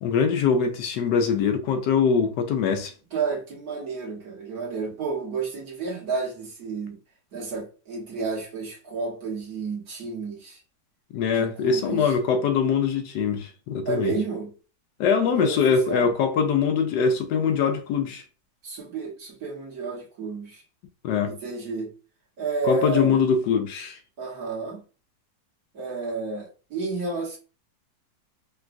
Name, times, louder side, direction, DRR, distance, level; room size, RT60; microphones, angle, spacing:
voice 1, 0.0-2.9 11.1-14.1 15.0-18.2 21.0-21.3 22.6-24.0, left 6 dB, 80° left, 1.2 m, -23 dB
voice 2, 3.1-7.0 7.3-10.6 11.4-12.1 13.8-14.5 15.2-16.1 18.6-20.6 21.2-22.0 22.4-23.2 24.2-24.8 25.7-27.4, right 4 dB, 60° right, 1.6 m, -31 dB
3.7 x 2.3 x 2.4 m
omnidirectional pair, 1.9 m